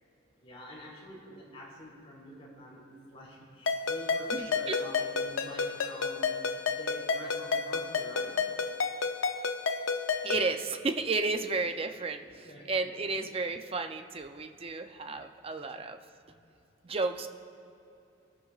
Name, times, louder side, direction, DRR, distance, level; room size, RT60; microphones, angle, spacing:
voice 1, 0.4-8.4 12.4-12.7 13.0-13.2 15.6-15.8 16.2-16.3, equal, 30° left, -5 dB, 3.4 m, -47 dB
Ringtone, 3.7-10.5, left 5 dB, 75° left, 0.7 m, -31 dB
voice 2, 4.3-4.8 10.2-16.0 16.8-17.3, right 3 dB, 30° right, 8 dB, 0.5 m, -33 dB
23.0 x 12.5 x 2.4 m, 2.7 s
head